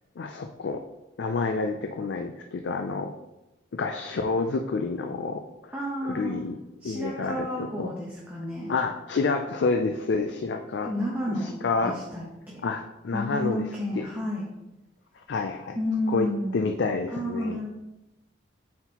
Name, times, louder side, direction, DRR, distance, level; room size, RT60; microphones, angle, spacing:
voice 1, 0.2-0.8 1.2-3.2 3.7-5.7 6.0-6.6 6.8-7.9 8.7-10.9 11.4-12.0 12.6-13.6 14.0-14.1 15.2-15.8 16.1-16.3 16.5-17.6, left 4 dB, 65° left, 5 dB, 0.4 m, -28 dB
voice 2, 5.7-6.4 6.8-8.7 10.8-12.6 13.1-14.4 15.7-16.6 17.1-17.7, left 1 dB, 10° right, -5 dB, 0.9 m, -31 dB
7.9 x 4.3 x 2.9 m, 0.96 s
head